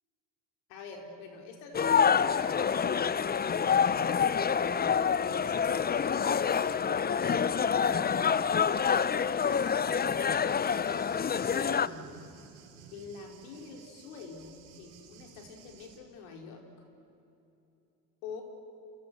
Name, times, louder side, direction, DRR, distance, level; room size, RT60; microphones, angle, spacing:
voice 1, 0.7-4.1 4.3-8.2 8.9-10.2 11.3-12.2 12.9-16.9 18.2-18.4, left 5 dB, 75° left, 2 dB, 4.3 m, -46 dB
sound 1, 1.7-11.9, left 7 dB, 20° left, 0.7 m, -27 dB
Thunder, 10.8-16.0, right 6 dB, 75° right, 4.4 m, -54 dB
28.5 x 28.0 x 6.8 m, 2.7 s
hypercardioid pair, 65°, 42 cm